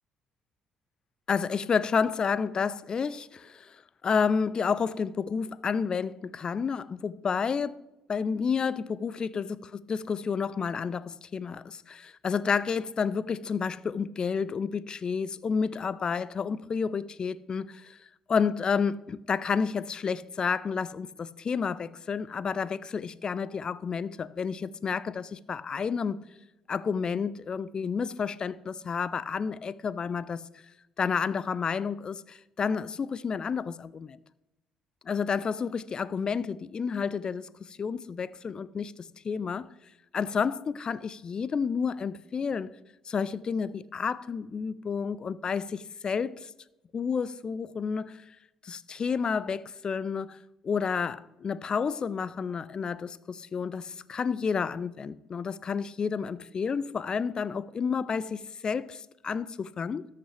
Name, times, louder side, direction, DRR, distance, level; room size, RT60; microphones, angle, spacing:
voice 1, 1.3-7.8 8.1-18.0 18.3-26.2 26.7-30.4 31.0-34.2 35.1-39.7 40.1-42.7 43.1-46.5 46.9-48.2 48.6-50.4 50.6-60.1, left 6 dB, 40° left, 0.4 m, -30 dB
13.5 x 5.7 x 3.3 m
hypercardioid pair, 50°, 2 cm